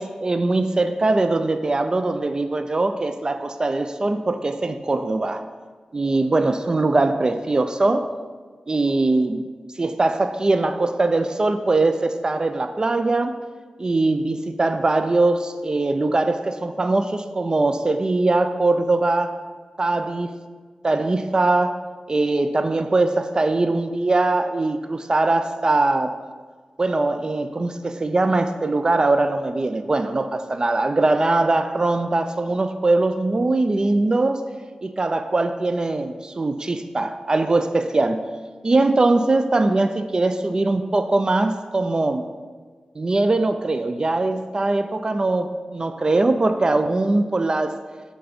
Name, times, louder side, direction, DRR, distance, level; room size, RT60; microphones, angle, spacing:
voice 1, 0.0-5.4 5.9-8.1 8.7-9.4 9.8-13.4 13.8-19.3 19.8-20.3 20.8-21.8 22.1-26.2 26.8-34.4 34.8-38.3 38.6-42.3 43.0-47.8, right 2 dB, 35° right, 9 dB, 0.3 m, -21 dB
7.9 x 3.8 x 5.1 m, 1.5 s
wide cardioid pair, 75°, 2 cm